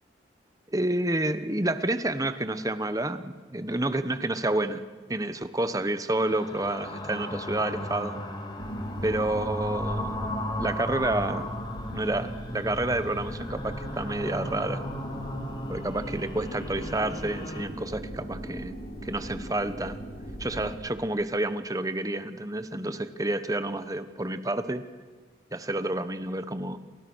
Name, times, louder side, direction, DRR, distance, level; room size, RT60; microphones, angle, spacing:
voice 1, 0.7-4.8 5.1-8.2 9.0-11.5 11.9-14.9 15.7-18.8 19.0-20.0 20.4-24.8 25.5-26.8, right 1 dB, 20° right, 11 dB, 1.2 m, -29 dB
sound 1, 6.3-17.6, left 1 dB, 25° left, 3.0 m, -36 dB
sound 2, 8.6-20.8, equal, 60° left, 6.7 m, -39 dB
28.5 x 27.5 x 6.4 m, 1.4 s
head